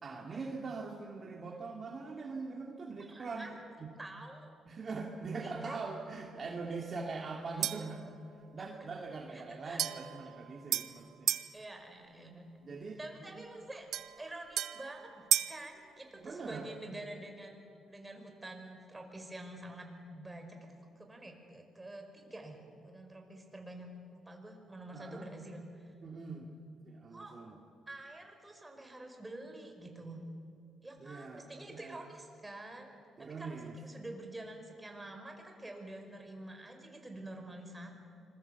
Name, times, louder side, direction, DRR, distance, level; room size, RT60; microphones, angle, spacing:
voice 1, 0.0-3.5 3.8-3.9 4.7-8.0 8.5-11.3 12.6-13.4 16.1-16.7 24.9-25.3 26.0-26.5 26.8-27.6 31.0-31.4 31.7-32.0 33.2-33.8, right 4 dB, 45° right, 1 dB, 2.4 m, -42 dB
voice 2, 3.1-4.6 5.4-5.8 7.6-7.7 9.3-9.8 11.5-12.5 13.0-13.9 14.2-17.6 17.9-20.6 21.0-25.9 27.1-27.4 27.9-30.3 30.8-32.9 33.2-37.9, right 1 dB, 15° right, 3 dB, 5.1 m, -48 dB
sound 1, 7.6-8.0 9.8-11.5 13.9-15.6, right 10 dB, 75° right, 0.8 m, -34 dB
26.5 x 21.5 x 8.2 m, 2.5 s
cardioid pair, 90°, 0 cm